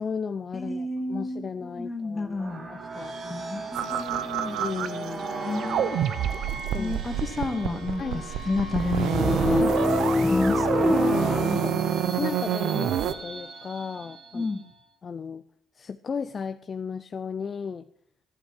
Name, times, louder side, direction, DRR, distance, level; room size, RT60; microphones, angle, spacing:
voice 1, 0.0-3.1 4.6-5.3 6.7-7.0 8.0-8.2 11.5-14.5 15.0-15.4 15.7-17.9, left 6 dB, 45° left, 10 dB, 0.6 m, -35 dB
voice 2, 0.5-2.7 3.2-4.6 5.4-6.0 6.8-9.6 10.2-11.0 14.3-14.6, left 2 dB, 25° left, 6 dB, 2.1 m, -31 dB
sound 1, 2.2-14.8, right 3 dB, 55° right, 2.5 m, -38 dB
sound 2, 3.7-5.3 5.6-13.1, right 10 dB, 80° right, 0.7 m, -28 dB
sound 3, 9.1-12.5, left 2 dB, 5° left, 1.3 m, -25 dB
12.0 x 11.5 x 6.4 m, 0.62 s
cardioid pair, 90°, 0 cm